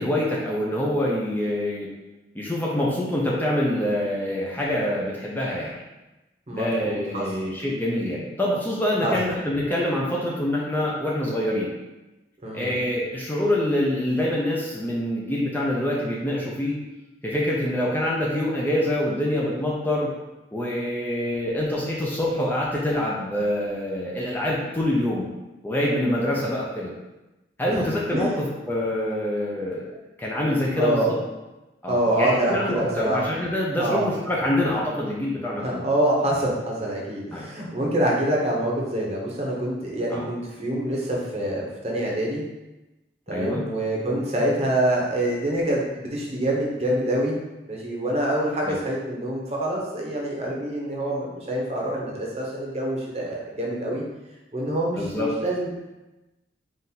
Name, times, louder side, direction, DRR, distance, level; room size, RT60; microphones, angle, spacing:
voice 1, 0.0-1.9 2.3-5.7 6.5-11.7 12.5-16.7 17.2-20.1 20.5-25.3 25.6-26.9 27.6-31.2 31.8-35.9 37.3-37.4 40.1-40.3 43.3-43.6 48.6-48.8 55.0-55.3, left 1 dB, 10° left, -4 dB, 0.5 m, -25 dB
voice 2, 6.5-7.2 9.0-9.1 12.4-12.7 27.7-27.8 28.1-28.4 30.8-31.1 31.9-33.2 33.8-34.1 35.6-42.4 43.3-47.3 47.6-54.0 54.5-55.8, right 1 dB, 35° right, -3 dB, 0.8 m, -26 dB
4.1 x 2.5 x 3.9 m, 1.0 s
head